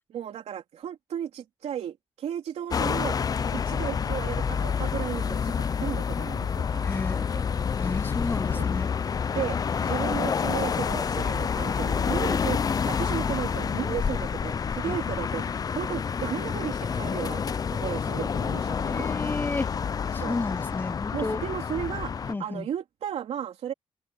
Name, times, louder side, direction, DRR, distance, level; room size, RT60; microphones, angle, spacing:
voice 1, 0.1-7.3 8.5-8.7 9.3-17.5 17.8-19.1 20.2-20.4 21.1-23.7, right 9 dB, 85° right, 3.4 m, -35 dB
sound 1, 2.7-22.3, left 6 dB, 35° left, 0.4 m, -28 dB
voice 2, 6.8-7.3 7.8-8.9 14.9-15.0 18.9-19.7 20.1-21.4 22.3-22.7, left 3 dB, 20° left, 0.8 m, -32 dB
open air
cardioid pair, 105°, 11 cm